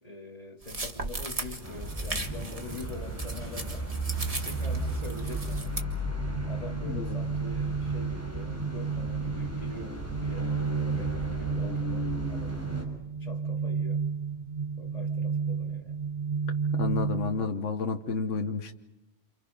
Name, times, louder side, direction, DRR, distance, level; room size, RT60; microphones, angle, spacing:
voice 1, 0.0-3.9 4.4-5.8 6.4-10.6 10.9-12.6 13.2-14.0 14.8-16.0, left 2 dB, 30° left, 0 dB, 3.2 m, -44 dB
sound 1, 0.6-5.8, right 2 dB, 30° right, 1.7 m, -37 dB
sound 2, 1.6-12.8, equal, 10° right, 4.9 m, -35 dB
sound 3, 4.7-17.5, right 6 dB, 45° right, 1.2 m, -32 dB
voice 2, 6.8-7.2 16.7-18.7, left 5 dB, 80° left, 4 dB, 1.5 m, -30 dB
28.5 x 28.0 x 5.4 m, 0.97 s
omnidirectional pair, 1.3 m